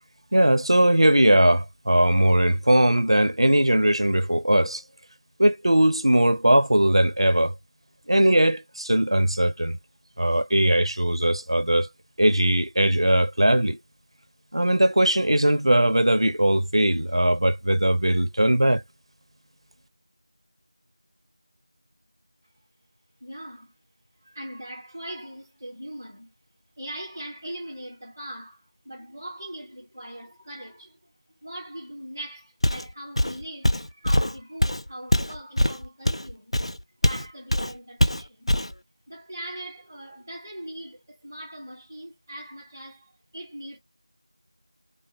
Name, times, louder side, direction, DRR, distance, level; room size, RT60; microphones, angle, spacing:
voice 1, 0.3-4.8 5.4-7.5 8.1-9.8 10.2-11.9 12.2-13.8 14.5-18.8, right 1 dB, 70° right, 0.6 m, -20 dB
voice 2, 23.2-23.7 24.2-26.3 26.8-31.1 31.4-36.6 37.0-38.5 39.1-43.8, right 1 dB, 5° right, 0.5 m, -40 dB
Walk footsteps, 32.6-32.9 33.2-37.3 37.5-37.7 38.0-38.7, left 1 dB, 85° left, 0.5 m, -23 dB
3.3 x 2.2 x 2.8 m
figure-of-eight pair, 175°, 3 cm